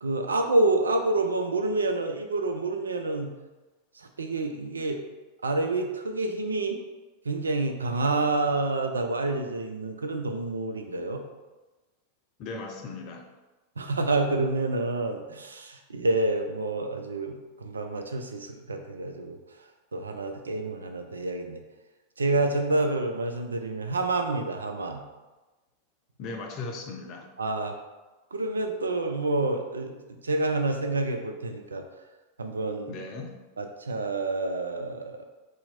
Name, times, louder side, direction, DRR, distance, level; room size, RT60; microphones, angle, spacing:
voice 1, 0.0-3.3 4.0-5.0 5.4-6.8 7.3-11.2 13.8-19.4 19.9-21.6 22.2-25.0 27.4-27.8 28.3-31.8 32.4-33.0 33.6-35.3, right 2 dB, 75° right, 5 dB, 0.4 m, -28 dB
voice 2, 12.4-13.3 26.2-27.3 32.9-33.4, left 3 dB, 40° left, 3 dB, 0.5 m, -37 dB
2.8 x 2.5 x 4.2 m, 1.2 s
figure-of-eight pair, 90°, 0 cm